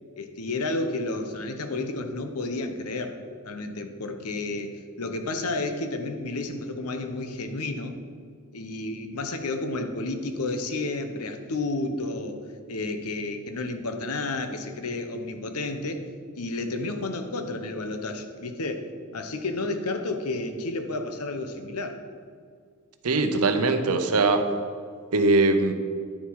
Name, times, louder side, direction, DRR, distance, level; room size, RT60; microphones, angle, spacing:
voice 1, 0.2-3.2 3.5-4.7 5.0-8.0 8.5-12.4 12.7-16.0 16.4-18.9 19.1-22.0, left 2 dB, 85° left, 7 dB, 0.9 m, -31 dB
voice 2, 23.0-24.5 25.1-25.7, right 3 dB, 80° right, 8 dB, 0.8 m, -21 dB
9.9 x 6.9 x 4.7 m, 2.1 s
head